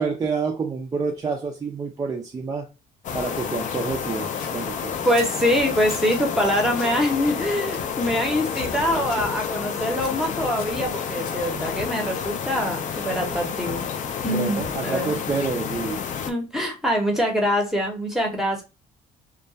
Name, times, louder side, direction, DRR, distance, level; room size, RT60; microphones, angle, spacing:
voice 1, 0.0-2.7 3.1-4.9 14.3-16.0, right 4 dB, 20° right, 0.3 m, -28 dB
sound 1, 3.0-16.3, left 7 dB, 45° left, 0.4 m, -30 dB
Scissors, 4.4-6.2 6.7-7.1 7.7-8.3 8.5-9.3 10.0-11.6, left 4 dB, 65° left, 0.8 m, -44 dB
voice 2, 5.0-13.9 14.2-15.1 16.3-18.6, equal, ahead, 0.7 m, -24 dB
2.2 x 2.2 x 2.7 m
cardioid pair, 110°, 17 cm